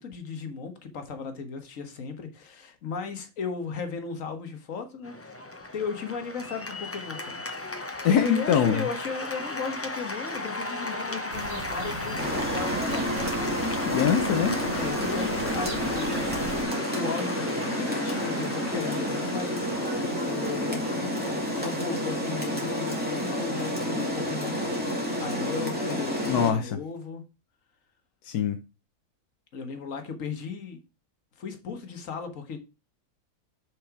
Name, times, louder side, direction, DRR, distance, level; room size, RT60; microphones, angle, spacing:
voice 1, 0.0-5.4 5.7-7.4 8.1-12.6 14.8-19.7 20.3-24.8 25.2-27.2 29.5-30.8 31.4-32.6, left 5 dB, 60° left, 1.7 m, -36 dB
Cheering / Applause, 5.0-24.3, left 2 dB, 20° left, 0.3 m, -37 dB
voice 2, 8.0-8.9 13.9-14.6 26.2-26.8 28.2-28.6, left 8 dB, 85° left, 1.3 m, -23 dB
sound 1, 11.3-16.6, right 5 dB, 50° right, 1.3 m, -39 dB
Rain, 12.2-26.5, equal, 5° right, 2.1 m, -30 dB
6.8 x 5.5 x 4.7 m
omnidirectional pair, 1.6 m